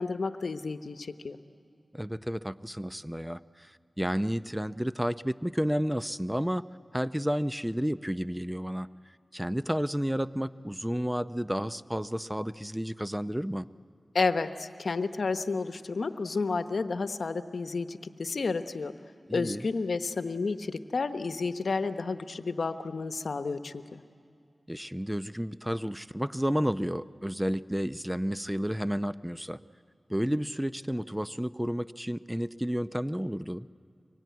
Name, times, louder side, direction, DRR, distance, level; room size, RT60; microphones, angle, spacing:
voice 1, 0.0-1.4 14.1-18.9 19.3-24.0, left 4 dB, 80° left, 9 dB, 0.9 m, -31 dB
voice 2, 1.9-6.7 6.9-8.9 9.3-13.7 19.3-19.7 24.7-29.6 30.1-33.7, equal, 10° right, 13 dB, 0.6 m, -31 dB
24.5 x 23.0 x 9.4 m, 2.5 s
cardioid pair, 40°, 0 cm